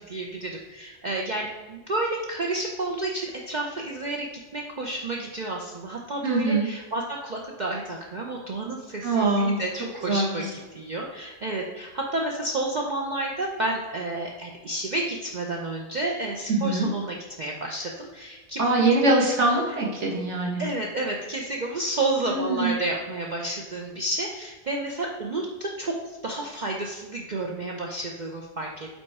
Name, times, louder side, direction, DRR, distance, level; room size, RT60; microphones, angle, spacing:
voice 1, 0.0-4.3 4.5-19.0 20.6-28.9, right 2 dB, 50° right, -1 dB, 0.6 m, -31 dB
voice 2, 6.2-6.7 9.0-9.6 10.0-10.4 16.5-16.9 18.6-20.6 22.2-22.7, right 2 dB, 65° right, -3 dB, 1.7 m, -23 dB
5.4 x 4.2 x 4.7 m, 1.3 s
omnidirectional pair, 1.3 m